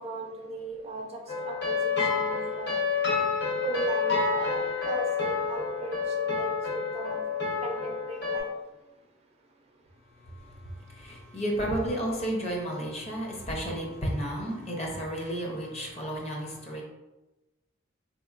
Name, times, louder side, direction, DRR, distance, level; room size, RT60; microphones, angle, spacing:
voice 1, 0.0-2.8 3.6-7.2 7.6-8.5, right 2 dB, 30° right, 1 dB, 0.4 m, -37 dB
sound 1, 1.3-8.4, left 5 dB, 60° left, 1.0 m, -29 dB
voice 2, 10.2-16.8, right 1 dB, 35° left, 0 dB, 0.7 m, -32 dB
3.8 x 2.9 x 2.4 m, 1.0 s
head